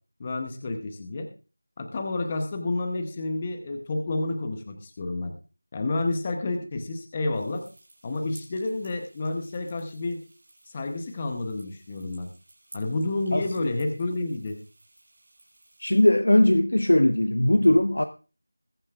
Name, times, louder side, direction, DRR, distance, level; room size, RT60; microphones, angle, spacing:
voice 1, 0.2-1.3 1.8-5.3 5.7-7.6 8.0-10.2 10.7-12.3 12.7-14.6, left 2 dB, 10° left, 0.8 m, -30 dB
sound 1, 7.3-16.1, right 2 dB, 25° right, 5.1 m, -55 dB
voice 2, 13.3-13.7 15.8-18.0, left 1 dB, 60° left, 0.8 m, -20 dB
21.5 x 9.0 x 2.4 m
figure-of-eight pair, 180°, 0 cm